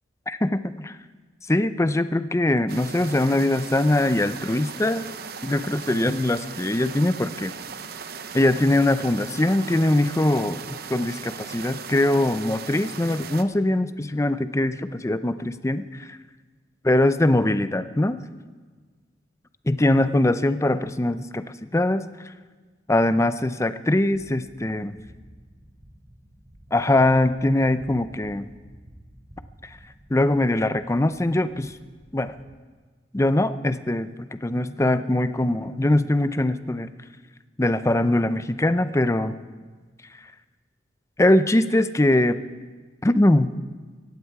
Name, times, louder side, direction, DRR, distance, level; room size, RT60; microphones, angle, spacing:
voice 1, 0.3-1.0 1.5-5.0 5.4-7.5 8.3-10.6 10.9-16.2 16.8-18.2 19.7-22.0 22.9-25.0 26.7-28.5 30.1-31.8 32.1-32.3 33.1-36.9 37.6-39.4 41.2-42.4 43.0-43.5, left 1 dB, 15° left, 12 dB, 0.5 m, -22 dB
sound 1, 2.7-13.4, right 6 dB, 55° right, 0.8 m, -38 dB
sound 2, 24.1-32.5, equal, 35° right, 2.4 m, -51 dB
18.5 x 15.0 x 4.8 m, 1.4 s
head